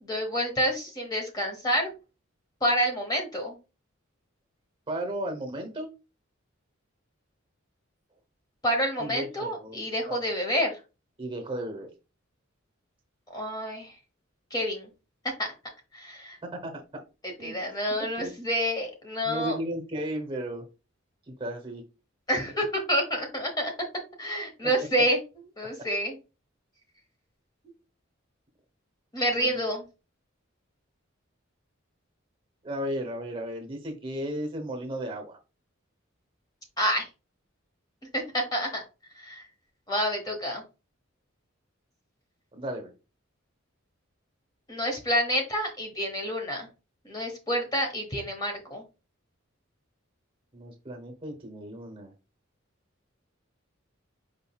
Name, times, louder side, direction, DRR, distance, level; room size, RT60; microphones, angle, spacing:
voice 1, 0.0-1.9 2.6-3.6 8.6-10.8 13.3-13.9 14.5-14.9 15.4-15.5 15.9-16.4 17.2-19.6 22.3-23.7 24.2-25.2 25.6-26.2 29.1-29.8 36.8-37.1 38.1-38.8 39.2-39.4 39.9-40.6 44.7-46.7 47.0-48.8, equal, 20° left, 3 dB, 1.1 m, -28 dB
voice 2, 4.9-5.9 9.0-9.8 10.1-10.3 11.2-11.9 16.4-16.8 17.4-17.5 18.2-18.3 19.2-20.6 21.4-21.8 29.3-29.6 32.6-35.4 42.5-42.9 50.5-52.1, right 1 dB, 25° right, 4 dB, 1.0 m, -34 dB
5.2 x 3.7 x 2.3 m, 0.30 s
head